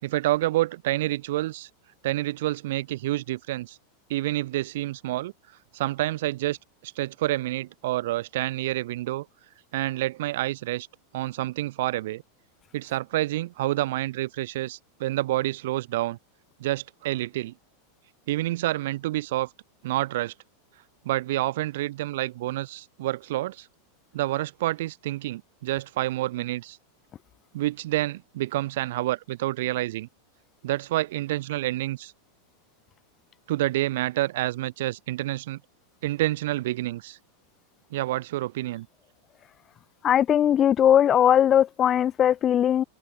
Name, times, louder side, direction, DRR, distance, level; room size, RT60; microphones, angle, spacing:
voice 1, 0.0-1.7 2.0-3.8 4.1-5.3 5.7-6.6 6.8-9.2 9.7-10.9 11.1-12.2 12.7-16.2 16.6-17.5 18.3-19.5 19.8-20.3 21.0-23.7 24.1-26.8 27.5-30.1 30.6-32.1 33.5-35.6 36.0-37.2 37.9-38.9, right 16 dB, 55° right, 5.1 m, -28 dB
voice 2, 40.0-42.8, left 10 dB, 25° left, 2.0 m, -19 dB
open air
figure-of-eight pair, 90°, 0 cm